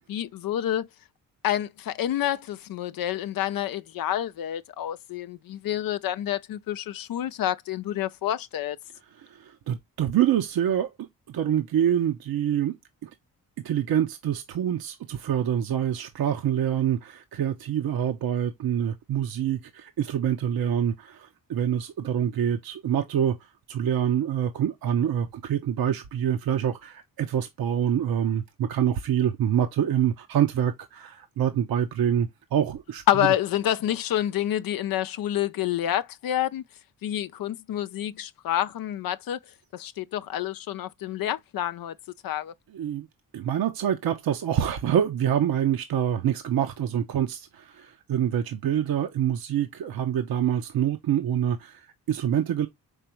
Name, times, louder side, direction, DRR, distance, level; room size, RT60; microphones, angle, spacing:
voice 1, 0.1-0.9 1.4-8.8 33.1-36.6 37.0-39.4 39.7-42.0 42.2-42.5, left 12 dB, 60° left, 0.5 m, -28 dB
voice 2, 9.1-12.7 13.0-13.1 13.6-33.0 42.7-43.1 43.3-52.7, right 9 dB, 65° right, 0.8 m, -26 dB
5.3 x 3.4 x 3.0 m
supercardioid pair, 55°, 38 cm